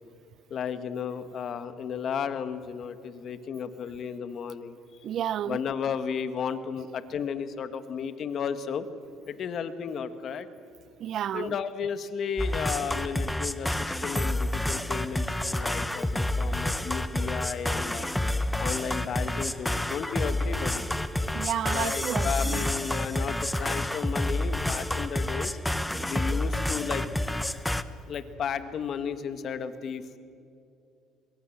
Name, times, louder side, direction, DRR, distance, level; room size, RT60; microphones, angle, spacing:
voice 1, 0.5-4.8 5.4-8.9 9.3-10.5 11.3-18.1 18.6-20.9 21.6-25.6 26.0-27.0 28.0-30.2, left 7 dB, 50° left, 11 dB, 1.6 m, -33 dB
voice 2, 5.0-5.6 11.0-11.5 21.3-22.6, right 10 dB, 55° right, 20 dB, 0.6 m, -31 dB
sound 1, 12.4-27.8, left 1 dB, 5° left, 1.0 m, -29 dB
24.0 x 22.0 x 7.4 m, 2.6 s
cardioid pair, 110°, 0 cm